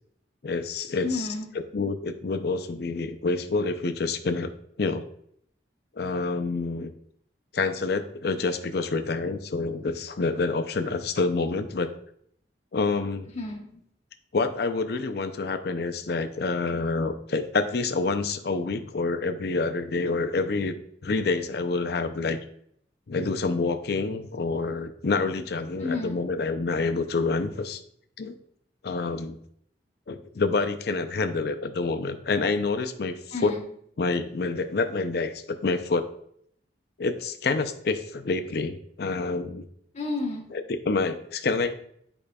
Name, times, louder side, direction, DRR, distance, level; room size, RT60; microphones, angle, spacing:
voice 1, 0.4-1.3 1.7-4.5 4.8-5.0 6.0-6.9 7.5-11.9 12.7-13.3 14.3-20.8 21.0-22.4 23.1-27.8 28.2-28.3 28.8-29.4 30.1-33.1 33.4-33.5 34.0-36.1 37.0-39.7 40.5-41.7, left 3 dB, 60° left, 8 dB, 0.5 m, -27 dB
voice 2, 1.0-1.5 13.3-13.8 25.8-26.2 33.3-33.6 39.9-40.5, left 3 dB, 40° left, 1 dB, 1.1 m, -31 dB
8.8 x 5.0 x 2.3 m, 0.68 s
head